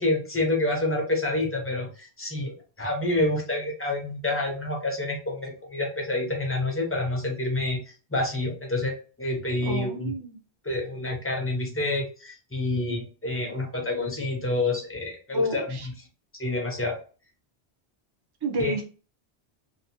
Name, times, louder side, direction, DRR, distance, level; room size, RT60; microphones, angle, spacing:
voice 1, 0.0-7.8 8.1-10.1 10.6-15.8 16.4-17.0 18.6-18.7, left 2 dB, 15° left, 1 dB, 0.5 m, -28 dB
voice 2, 9.7-10.4 15.3-15.9 18.4-18.8, equal, 30° right, 2 dB, 0.5 m, -29 dB
2.7 x 2.1 x 2.8 m, 0.36 s
omnidirectional pair, 1.1 m